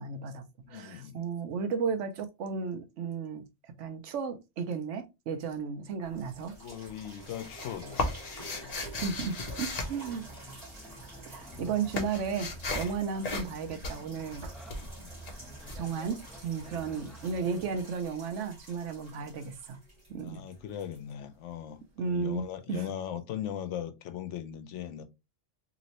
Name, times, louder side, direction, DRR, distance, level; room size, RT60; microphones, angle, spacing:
voice 1, 0.0-3.4 3.8-6.6 8.8-10.3 11.2-14.5 15.7-19.8 20.1-20.5 22.0-22.9, right 5 dB, 80° right, 1.0 m, -34 dB
voice 2, 0.6-1.2 6.6-8.8 11.5-11.8 15.0-15.2 16.8-17.0 19.2-19.3 20.2-25.0, left 10 dB, 75° left, 0.9 m, -39 dB
sound 1, 6.0-6.5 6.8-10.9 11.2-16.7, left 2 dB, 40° left, 0.7 m, -37 dB
sound 2, 6.1-21.8 22.4-22.5, right 1 dB, 25° right, 1.6 m, -51 dB
sound 3, 10.0-17.8, right 2 dB, ahead, 0.4 m, -50 dB
3.1 x 2.9 x 2.8 m
omnidirectional pair, 1.2 m